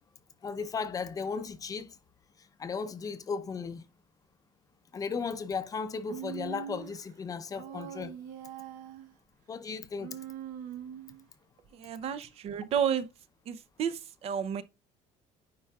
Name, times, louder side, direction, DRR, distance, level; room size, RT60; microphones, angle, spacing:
voice 1, 0.4-2.0 2.6-3.8 4.9-8.2 9.5-10.2, left 5 dB, 25° left, 0.6 m, -35 dB
Human voice, 6.1-7.0 7.6-9.1 10.0-11.3, right 9 dB, 75° right, 0.9 m, -42 dB
voice 2, 11.7-13.1 13.5-14.6, right 8 dB, 45° right, 0.6 m, -31 dB
9.9 x 4.7 x 2.3 m
cardioid pair, 160°, 14 cm